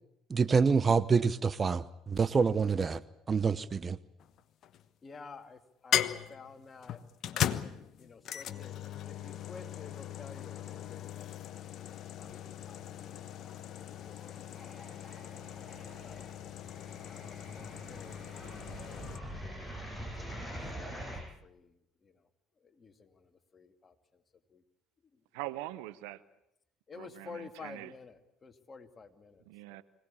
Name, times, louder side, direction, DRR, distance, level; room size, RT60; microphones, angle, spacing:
voice 1, 0.3-3.0 3.3-4.0, right 5 dB, 35° right, 16 dB, 0.9 m, -27 dB
sound 1, 4.2-4.9 5.9-19.2, left 10 dB, 55° left, 1.1 m, -38 dB
voice 2, 5.0-7.0 7.3-11.3 13.8-16.2 16.9-19.8 20.2-20.3 20.6-21.1 21.4-22.3 22.6-24.2 24.5-24.6 25.1-25.2 26.9-29.4 29.7-29.8, left 4 dB, 35° left, 6 dB, 2.5 m, -52 dB
sound 2, 12.2-12.9 13.1-21.2, equal, 5° right, 7.3 m, -45 dB
voice 3, 25.3-26.2 27.0-27.9 29.5-29.8, right 17 dB, 75° right, 15 dB, 0.9 m, -42 dB
25.0 x 18.0 x 8.7 m, 0.82 s
hypercardioid pair, 60°, 0 cm